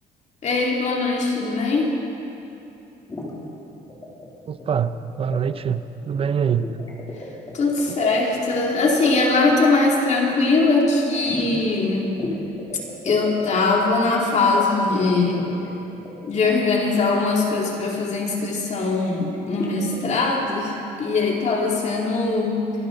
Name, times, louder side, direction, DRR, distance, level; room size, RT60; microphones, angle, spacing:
voice 1, 0.4-1.9 7.5-12.1 13.0-15.5 16.3-22.7, left 3 dB, 45° left, -1 dB, 2.8 m, -21 dB
sound 1, 3.1-3.3 3.9-4.3 4.6-5.0 5.3-5.4 6.6-9.4 11.2-11.7 12.2-13.5 14.9-16.5 19.2-20.1, left 2 dB, 25° left, 3.1 m, -34 dB
voice 2, 4.5-6.8 7.9-8.0, right 7 dB, 35° right, 12 dB, 0.6 m, -24 dB
24.0 x 12.0 x 4.0 m, 2.8 s
cardioid pair, 110°, 17 cm